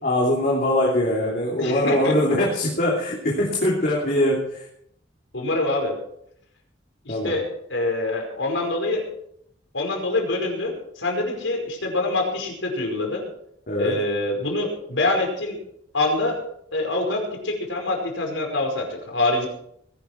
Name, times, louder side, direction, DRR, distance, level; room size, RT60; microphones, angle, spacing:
voice 1, 0.0-4.7 7.1-7.3 13.7-14.0, left 1 dB, 50° left, -3 dB, 3.0 m, -22 dB
voice 2, 1.6-2.1 5.3-6.0 7.0-7.4 7.7-9.0 9.7-13.2 13.8-15.6 15.9-16.3 16.7-19.5, left 2 dB, 85° left, 2 dB, 5.1 m, -25 dB
20.0 x 11.5 x 4.6 m, 0.72 s
head